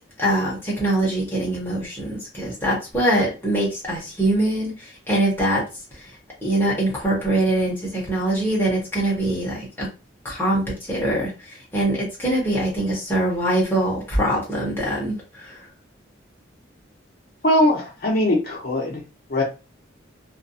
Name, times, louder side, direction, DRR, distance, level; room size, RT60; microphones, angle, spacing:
voice 1, 0.2-4.7 5.1-5.6 6.4-9.9 10.2-10.6 10.9-11.3 11.7-15.5, right 1 dB, 10° left, -4 dB, 0.8 m, -23 dB
voice 2, 17.4-19.0 19.3-19.4, left 1 dB, 50° left, -1 dB, 0.6 m, -20 dB
2.4 x 2.2 x 2.6 m, 0.30 s
head